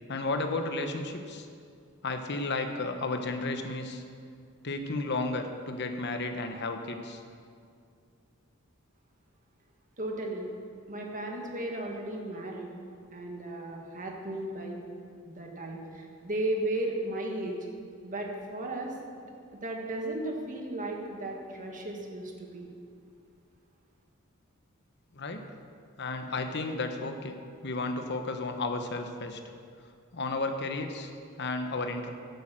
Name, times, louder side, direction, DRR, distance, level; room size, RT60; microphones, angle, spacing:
voice 1, 0.1-1.5 2.0-4.0 4.6-7.2 25.1-25.4 26.0-27.3 27.6-29.4 30.1-31.1 31.4-32.1, left 2 dB, 55° left, 6 dB, 1.0 m, -33 dB
voice 2, 10.0-10.5 10.9-12.7 13.1-14.8 15.2-17.6 18.0-18.9 19.6-22.7, right 1 dB, 40° right, 1 dB, 1.7 m, -35 dB
11.0 x 8.2 x 7.5 m, 2.3 s
head